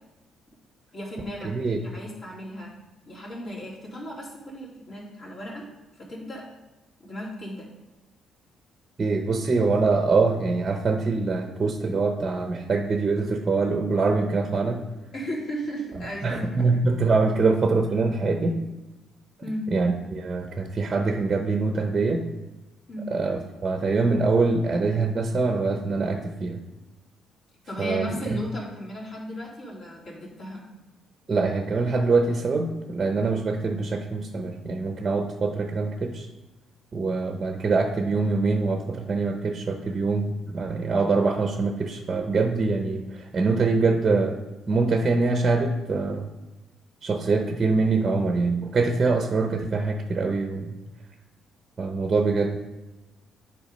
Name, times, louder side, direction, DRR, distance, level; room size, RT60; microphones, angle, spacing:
voice 1, 0.9-1.5 1.8-2.7 3.1-5.7 6.0-6.4 7.0-7.7 15.1-16.8 19.4-19.7 22.9-23.1 27.7-30.6, equal, 50° left, -5 dB, 3.2 m, -35 dB
voice 2, 1.4-1.8 9.0-14.8 16.2-18.6 19.7-22.2 23.1-26.6 27.8-28.4 31.3-36.3 36.9-44.4 44.7-46.3 47.0-50.8 51.8-52.6, right 3 dB, 25° right, 5 dB, 0.7 m, -24 dB
10.5 x 4.6 x 5.3 m, 1.1 s
cardioid pair, 145°, 0 cm